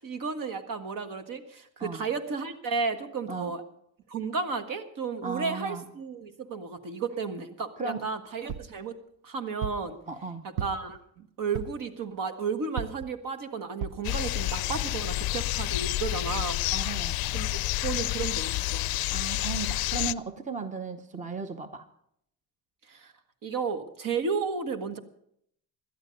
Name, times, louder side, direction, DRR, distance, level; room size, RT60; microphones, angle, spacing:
voice 1, 0.0-3.6 4.1-9.0 9.2-10.0 10.6-16.6 17.3-18.9 22.9-23.1 23.4-25.0, right 5 dB, 55° right, 9 dB, 1.6 m, -33 dB
voice 2, 5.2-5.8 7.8-8.0 10.1-10.5 16.7-17.5 19.1-21.9, right 4 dB, 20° right, 10 dB, 0.9 m, -36 dB
sound 1, 8.5-8.8 9.6-9.9 10.6-11.0 11.5-11.9 12.8-13.1 13.8-14.1 14.7-14.8 15.0-15.1, right 8 dB, 75° right, 0.7 m, -35 dB
sound 2, 14.0-20.1, left 17 dB, 65° left, 0.5 m, -29 dB
17.5 x 12.0 x 5.2 m, 0.70 s
cardioid pair, 110°, 39 cm